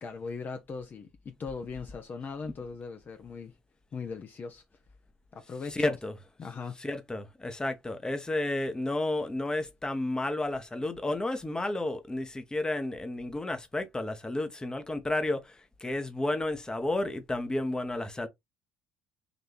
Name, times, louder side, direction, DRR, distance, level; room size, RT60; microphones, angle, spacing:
voice 1, 0.0-3.5 3.9-4.6 5.3-6.0 6.4-6.8, left 5 dB, 40° left, 0.7 m, -39 dB
voice 2, 5.7-6.1 6.8-18.3, left 2 dB, 15° left, 1.0 m, -32 dB
4.0 x 2.7 x 3.3 m
hypercardioid pair, 70°, 5 cm